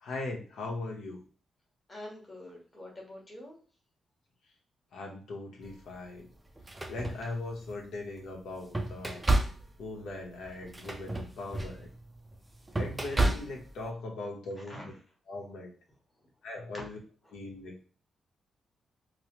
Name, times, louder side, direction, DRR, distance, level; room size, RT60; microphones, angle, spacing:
voice 1, 0.0-1.2 4.9-6.3 6.9-9.2 9.8-11.9 12.7-14.8 15.3-15.7 16.4-17.0 17.3-17.9, left 2 dB, 85° left, 0 dB, 0.9 m, -39 dB
voice 2, 1.9-3.6 14.7-14.9 16.7-16.8 17.3-17.4, left 1 dB, 20° left, -2 dB, 1.0 m, -45 dB
sound 1, 5.6-5.8 6.5-7.8 8.3-13.9, right 2 dB, 10° right, 0.4 m, -32 dB
3.0 x 2.0 x 2.9 m, 0.40 s
wide cardioid pair, 165°, 0 cm